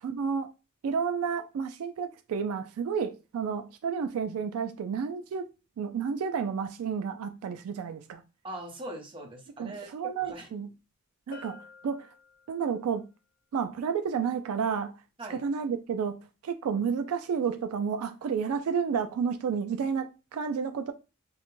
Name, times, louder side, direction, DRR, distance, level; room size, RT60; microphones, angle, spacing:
voice 1, 0.0-0.5 0.8-5.5 5.8-8.2 9.6-10.7 11.3-12.1 12.5-13.1 13.5-15.0 15.3-16.1 16.4-20.9, right 6 dB, 80° right, 0.3 m, -31 dB
voice 2, 8.4-9.9 10.2-10.5 11.3-11.4 15.2-15.4, right 1 dB, 25° right, 0.8 m, -41 dB
Bell, 11.3-12.9, left 3 dB, 45° left, 0.6 m, -49 dB
2.3 x 2.1 x 3.0 m
head